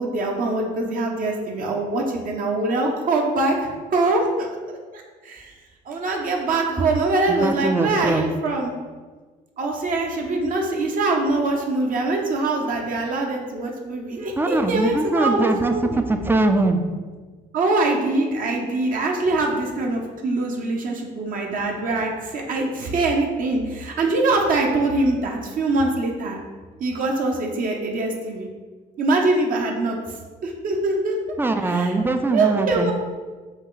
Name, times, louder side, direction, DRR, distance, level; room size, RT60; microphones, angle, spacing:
voice 1, 0.0-5.5 5.9-8.8 9.6-16.0 17.5-26.4 26.8-28.5 29.0-30.0 30.4-31.2 31.6-31.9 32.3-32.9, right 2 dB, 55° right, 1 dB, 0.8 m, -23 dB
voice 2, 7.3-8.2 14.4-15.7 16.0-16.8 31.4-32.9, right 2 dB, 15° right, 6 dB, 0.4 m, -21 dB
5.2 x 2.4 x 4.0 m, 1.4 s
cardioid pair, 110°, 17 cm